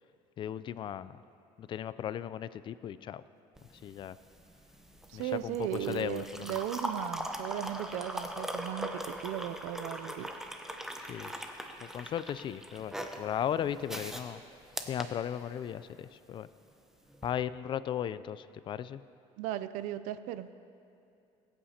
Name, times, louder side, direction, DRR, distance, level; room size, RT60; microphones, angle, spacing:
voice 1, 0.4-1.2 1.6-3.2 3.8-4.2 5.1-6.6 11.0-11.4 11.8-14.4 14.9-16.5 17.2-19.0, left 10 dB, 40° left, 15 dB, 0.3 m, -36 dB
sound 1, 3.6-15.9 17.1-17.3, right 1 dB, 5° right, 0.8 m, -40 dB
voice 2, 5.1-10.3 19.4-20.5, right 12 dB, 80° right, 13 dB, 0.5 m, -36 dB
21.5 x 8.6 x 2.8 m, 2.7 s
cardioid pair, 120°, 13 cm